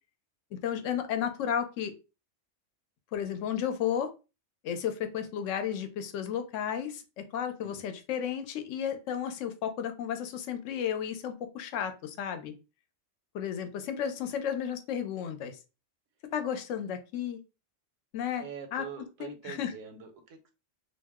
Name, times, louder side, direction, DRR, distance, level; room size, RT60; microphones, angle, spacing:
voice 1, 0.5-1.9 3.1-4.1 4.6-12.5 13.3-15.6 16.3-17.4 18.1-18.4 18.7-18.9 19.2-19.7, left 8 dB, 85° left, 8 dB, 0.9 m, -33 dB
voice 2, 18.4-20.5, right 7 dB, 90° right, 6 dB, 1.0 m, -44 dB
2.5 x 2.0 x 3.4 m, 0.30 s
omnidirectional pair, 1.2 m